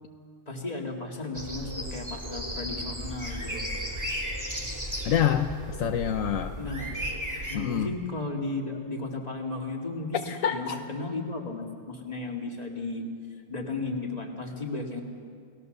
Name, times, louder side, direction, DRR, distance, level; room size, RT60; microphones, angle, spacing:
voice 1, 0.5-3.6 6.6-7.0 7.5-13.1 13.5-15.0, left 3 dB, 30° left, 1 dB, 2.6 m, -34 dB
sound 1, 1.3-7.6, equal, 15° right, 2.4 m, -35 dB
voice 2, 5.0-6.5 7.5-7.9 10.2-10.8, left 9 dB, 75° left, 7 dB, 1.2 m, -27 dB
29.0 x 18.5 x 6.8 m, 2.2 s
omnidirectional pair, 1.4 m